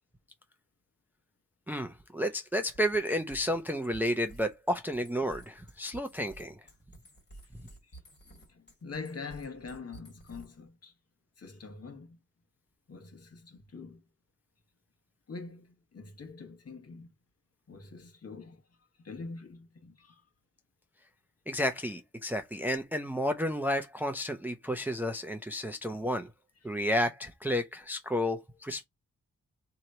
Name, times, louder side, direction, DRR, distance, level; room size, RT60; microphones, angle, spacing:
voice 1, 1.7-6.6 21.5-26.3 26.6-28.9, equal, 5° right, 0.5 m, -31 dB
sound 1, 2.7-10.7, right 1 dB, 35° left, 2.4 m, -53 dB
voice 2, 8.3-10.9 11.4-12.2 12.9-14.0 15.3-17.1 17.7-18.6 19.0-20.2, left 4 dB, 50° left, 1.3 m, -44 dB
3.8 x 3.0 x 4.3 m
wide cardioid pair, 155°, 32 cm